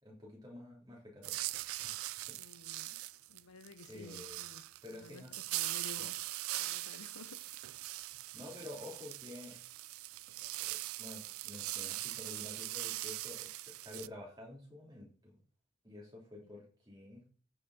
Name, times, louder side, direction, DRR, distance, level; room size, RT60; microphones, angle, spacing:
voice 1, 0.0-1.4 1.8-2.4 2.9-3.1 3.9-4.4 4.8-5.3 6.0-6.1 8.3-9.6 10.6-15.4 15.8-17.3, left 2 dB, 20° right, 3.5 m, -50 dB
sound 1, 1.2-14.1, right 18 dB, 80° right, 0.3 m, -41 dB
voice 2, 2.3-7.6 8.0-8.1 16.4-16.5, left 3 dB, 90° left, 0.8 m, -54 dB
14.5 x 4.9 x 4.3 m
head